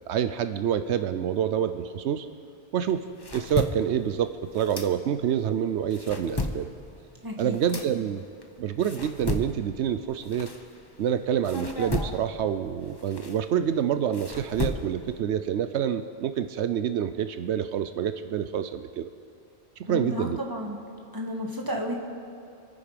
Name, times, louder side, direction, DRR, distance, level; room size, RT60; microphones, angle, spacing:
voice 1, 0.1-2.3 2.7-6.7 7.4-8.2 8.6-10.5 11.0-19.1 19.8-20.4, right 9 dB, 85° right, 10 dB, 0.9 m, -27 dB
sound 1, 2.9-5.4 5.8-11.1 11.4-15.2, left 2 dB, 25° left, 0.9 m, -35 dB
voice 2, 7.2-7.6 19.8-20.8 21.1-21.9, left 1 dB, 20° right, 0 dB, 1.8 m, -32 dB
26.0 x 9.6 x 5.2 m, 2.8 s
omnidirectional pair, 1.1 m